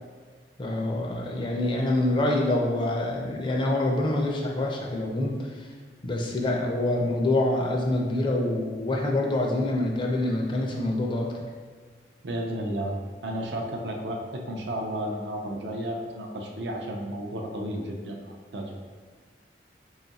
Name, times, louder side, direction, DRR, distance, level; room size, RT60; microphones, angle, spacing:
voice 1, 0.6-5.7 6.0-11.5, left 1 dB, 25° left, 0 dB, 0.4 m, -26 dB
voice 2, 12.2-13.0 13.2-18.7, right 1 dB, 75° right, 2 dB, 0.5 m, -32 dB
3.6 x 2.4 x 4.0 m, 1.5 s
head